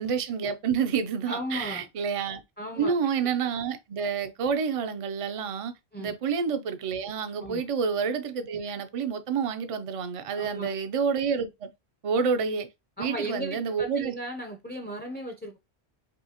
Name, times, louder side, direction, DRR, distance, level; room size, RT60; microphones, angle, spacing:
voice 1, 0.0-2.4 2.8-5.7 6.0-11.7 12.0-12.7 13.0-14.1, right 6 dB, 50° right, 0.4 m, -28 dB
voice 2, 1.3-1.9 2.6-2.9 5.9-6.1 7.4-7.6 10.3-10.8 13.0-15.6, equal, 15° left, 0.4 m, -36 dB
5.3 x 2.7 x 2.8 m
omnidirectional pair, 1.2 m